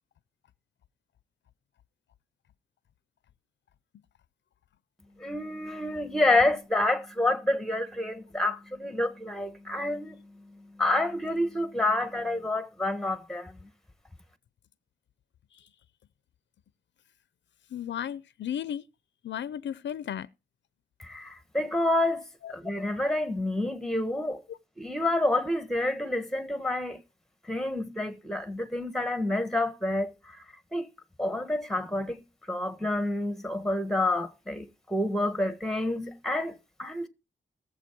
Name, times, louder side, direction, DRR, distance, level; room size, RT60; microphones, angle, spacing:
voice 1, 5.2-13.7 21.0-22.2 22.5-24.4 24.8-27.0 27.5-30.1 30.7-30.9 31.2-32.2 32.5-37.1, left 2 dB, 5° left, 1.4 m, -28 dB
voice 2, 17.7-18.8 19.2-20.3 22.4-22.5 24.5-24.6, left 9 dB, 85° left, 0.5 m, -34 dB
17.5 x 7.6 x 4.6 m
wide cardioid pair, 125°, 18 cm